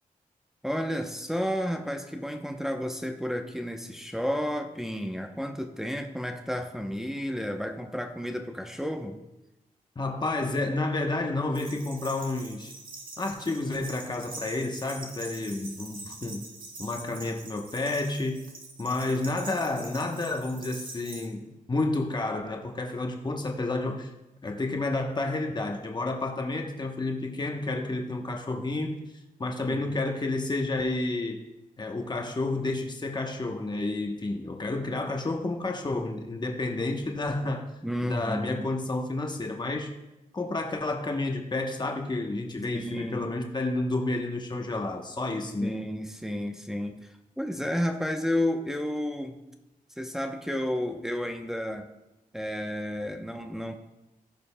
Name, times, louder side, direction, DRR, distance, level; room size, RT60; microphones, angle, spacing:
voice 1, 0.6-9.2 29.6-29.8 37.8-38.7 42.7-43.3 45.6-49.4 50.0-51.9 52.3-53.8, equal, 5° right, 4 dB, 0.7 m, -32 dB
voice 2, 10.0-12.7 13.2-16.4 16.8-18.4 18.8-24.1 24.4-31.4 31.8-37.7 38.0-39.9 40.3-45.7, left 2 dB, 30° left, 2 dB, 0.9 m, -30 dB
sound 1, 11.5-21.3, right 2 dB, 70° right, 1.5 m, -44 dB
15.5 x 5.2 x 2.2 m, 0.98 s
cardioid pair, 70°, 15 cm